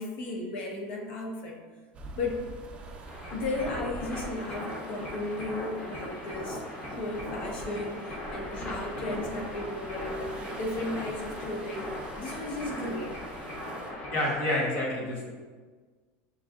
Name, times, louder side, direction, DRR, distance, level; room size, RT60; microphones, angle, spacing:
voice 1, 0.0-1.6 2.1-2.5 3.3-11.9 12.2-13.2, left 2 dB, 85° left, 0 dB, 0.9 m, -35 dB
sound 1, 1.9-13.9, right 2 dB, 20° right, 0.4 m, -46 dB
sound 2, 3.0-14.3, left 1 dB, 25° left, 0.6 m, -39 dB
voice 2, 14.1-15.3, left 1 dB, 45° left, -1 dB, 1.0 m, -28 dB
7.0 x 2.7 x 2.4 m, 1.4 s
supercardioid pair, 175°, 6 cm